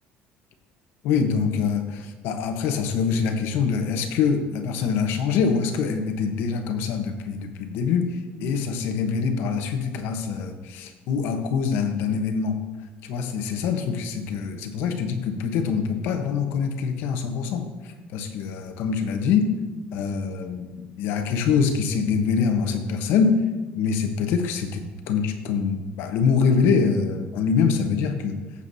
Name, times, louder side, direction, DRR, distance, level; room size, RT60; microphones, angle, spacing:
voice 1, 1.0-12.6 13.0-19.5 19.9-23.4 23.7-28.4, left 6 dB, 80° left, 6 dB, 1.1 m, -24 dB
15.0 x 7.2 x 2.8 m, 1.2 s
cardioid pair, 140°, 4 cm